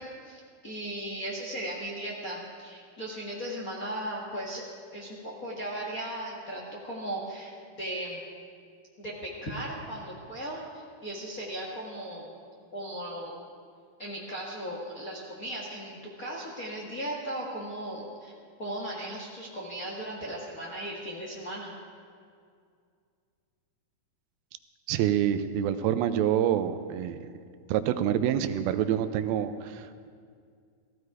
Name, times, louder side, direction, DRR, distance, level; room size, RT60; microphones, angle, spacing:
voice 1, 0.0-4.6 4.9-7.5 7.8-8.2 9.0-12.4 12.7-13.4 14.0-18.3 18.6-21.7, right 1 dB, 45° left, -3 dB, 1.1 m, -37 dB
voice 2, 24.9-27.2 27.7-30.1, right 10 dB, 90° right, 11 dB, 2.6 m, -27 dB
16.0 x 15.5 x 4.8 m, 2.2 s
omnidirectional pair, 4.2 m